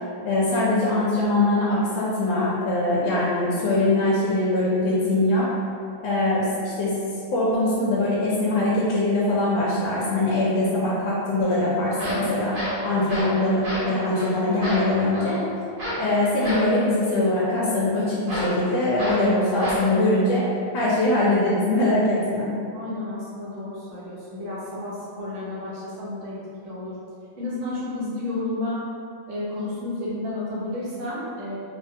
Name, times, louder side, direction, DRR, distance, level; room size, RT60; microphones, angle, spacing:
voice 1, 0.2-5.5 6.0-6.9 7.3-15.4 16.0-20.4 20.7-22.5, left 2 dB, 75° left, -7 dB, 1.2 m, -22 dB
sound 1, 11.4-11.5 11.9-13.4 13.6-13.9 14.1-14.3 14.6-15.3 15.8-16.1 16.4-16.7 18.3-18.6 19.0-19.3 19.6-19.9, equal, 70° right, 1.6 m, -29 dB
voice 2, 22.7-27.0 27.4-28.8 29.3-31.5, left 2 dB, 50° right, -9 dB, 0.9 m, -31 dB
3.5 x 2.1 x 2.7 m, 2.5 s
omnidirectional pair, 2.2 m